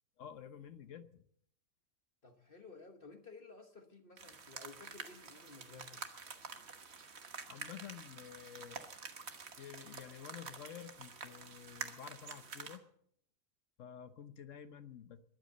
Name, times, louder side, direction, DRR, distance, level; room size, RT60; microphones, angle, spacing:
voice 1, 0.2-1.3 7.4-8.9 9.6-12.9 13.8-15.2, left 9 dB, 65° left, 12 dB, 1.2 m, -50 dB
voice 2, 2.2-6.0, left 4 dB, 40° left, 6 dB, 1.4 m, -55 dB
sound 1, 4.2-12.8, right 5 dB, 50° right, 1.5 m, -48 dB
22.0 x 8.2 x 6.7 m, 0.68 s
omnidirectional pair, 1.4 m